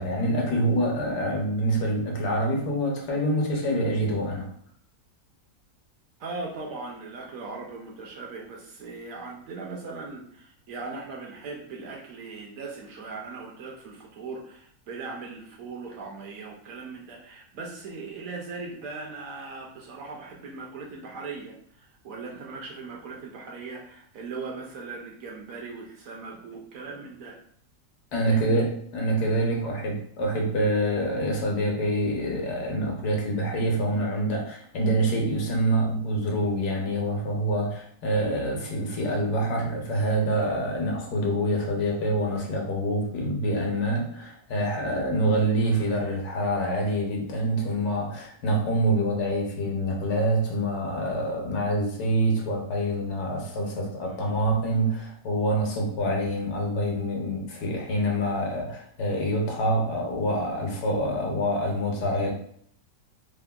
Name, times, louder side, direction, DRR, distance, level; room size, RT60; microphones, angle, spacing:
voice 1, 0.0-4.5 28.1-62.3, right 1 dB, 75° left, -1 dB, 1.2 m, -26 dB
voice 2, 6.2-27.4 28.2-28.7 29.6-29.7 45.6-46.2 54.1-54.4, right 3 dB, 70° right, -1 dB, 0.9 m, -39 dB
3.4 x 2.1 x 2.2 m, 0.64 s
omnidirectional pair, 1.7 m